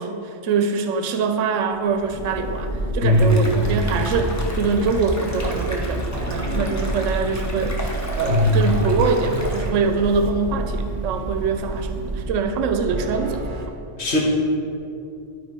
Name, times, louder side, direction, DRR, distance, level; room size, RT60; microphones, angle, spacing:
voice 1, 0.0-13.4, right 4 dB, 80° right, 7 dB, 1.0 m, -24 dB
Thunder, 1.7-12.7, equal, 35° left, 2.4 m, -31 dB
voice 2, 3.0-3.3 8.2-8.6 14.0-14.2, left 1 dB, 60° left, -2 dB, 1.6 m, -18 dB
sound 1, 3.1-9.7, left 1 dB, 15° left, 0.8 m, -35 dB
sound 2, 3.4-13.7, right 4 dB, 40° right, 0.7 m, -31 dB
12.0 x 4.7 x 4.5 m, 2.6 s
omnidirectional pair, 1.3 m